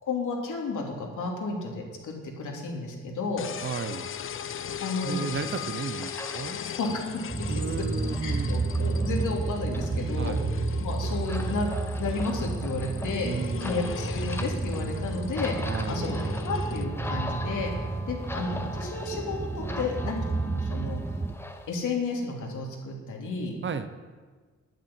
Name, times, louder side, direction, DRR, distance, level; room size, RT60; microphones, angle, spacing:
voice 1, 0.0-3.5 4.6-5.3 6.6-6.9 8.2-11.7 12.0-13.3 13.6-15.6 15.9-16.2 16.4-17.7 18.1-21.0 21.7-23.5, left 3 dB, 80° left, 0 dB, 3.2 m, -32 dB
sound 1, 3.4-16.8, left 8 dB, 45° left, 0.6 m, -39 dB
voice 2, 3.6-4.1 5.0-6.6 7.5-8.6 10.2-10.5 13.2-14.0 15.6-16.1 23.6-23.9, right 5 dB, 40° right, 11 dB, 0.7 m, -34 dB
sound 2, 4.1-21.7, left 1 dB, 10° left, 0.9 m, -42 dB
sound 3, 7.3-21.4, right 3 dB, 10° right, 0.4 m, -31 dB
11.0 x 9.1 x 8.8 m, 1.5 s
wide cardioid pair, 175°, 30 cm